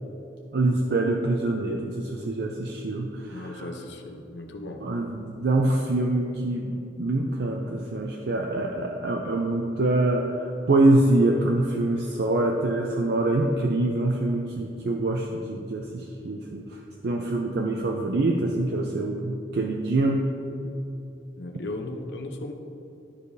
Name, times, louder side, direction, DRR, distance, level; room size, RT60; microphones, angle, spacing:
voice 1, 0.5-3.7 4.8-20.3, right 2 dB, 65° right, 1 dB, 0.5 m, -25 dB
voice 2, 3.2-4.8 21.4-22.5, left 2 dB, 75° left, 3 dB, 0.8 m, -36 dB
12.5 x 4.8 x 2.7 m, 2.8 s
head